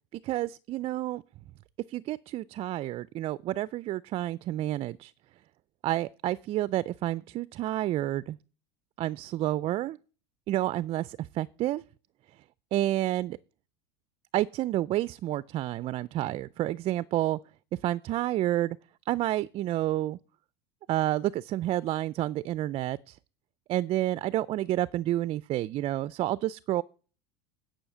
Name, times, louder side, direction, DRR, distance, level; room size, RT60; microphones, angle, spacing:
voice 1, 0.1-1.2 1.9-5.1 5.8-8.4 9.0-10.0 10.5-11.8 12.7-13.4 14.3-17.4 17.8-18.8 19.1-20.2 20.9-23.2 23.7-26.8, right 14 dB, 40° right, 0.4 m, -29 dB
10.0 x 5.6 x 6.8 m
supercardioid pair, 110°, 15 cm